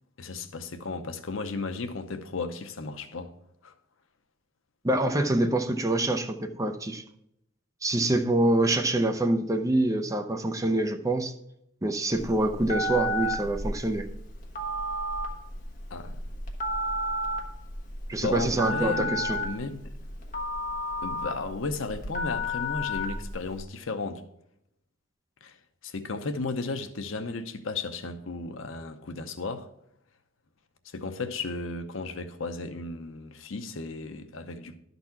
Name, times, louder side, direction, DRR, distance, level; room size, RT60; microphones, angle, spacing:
voice 1, 0.2-3.3 3.6-3.7 15.9-16.2 18.1-19.9 21.0-24.2 25.4-25.6 25.8-29.7 30.8-34.8, left 3 dB, 80° left, 0.7 m, -34 dB
voice 2, 4.8-7.0 7.8-11.3 11.8-14.1 18.1-19.4, right 1 dB, 15° right, 0.5 m, -26 dB
Telephone, 12.1-23.6, left 1 dB, 40° left, 1.3 m, -32 dB
11.5 x 4.1 x 5.8 m
head